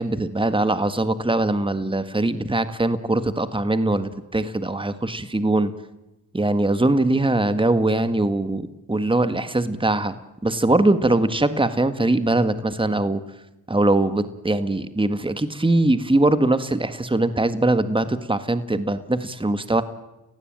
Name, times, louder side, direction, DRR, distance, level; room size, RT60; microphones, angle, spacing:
voice 1, 0.0-5.7 6.3-10.1 10.4-13.2 13.7-19.8, right 2 dB, 15° right, 11 dB, 1.7 m, -21 dB
28.5 x 16.0 x 9.0 m, 0.98 s
supercardioid pair, 50°, 39 cm